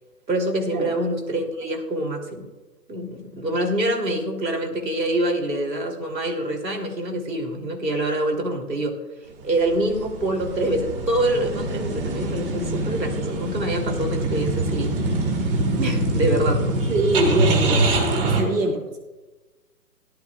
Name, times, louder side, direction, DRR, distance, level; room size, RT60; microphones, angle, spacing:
voice 1, 0.3-2.5 2.9-9.0 9.4-14.9 15.8-16.7 18.4-18.6, right 1 dB, 85° right, 3 dB, 2.9 m, -25 dB
sound 1, 9.5-18.4, right 2 dB, 35° right, 2.0 m, -24 dB
voice 2, 16.9-17.9 18.2-19.0, right 2 dB, 55° right, 0 dB, 2.2 m, -23 dB
18.0 x 11.5 x 2.3 m, 1.1 s
hypercardioid pair, 155°, 49 cm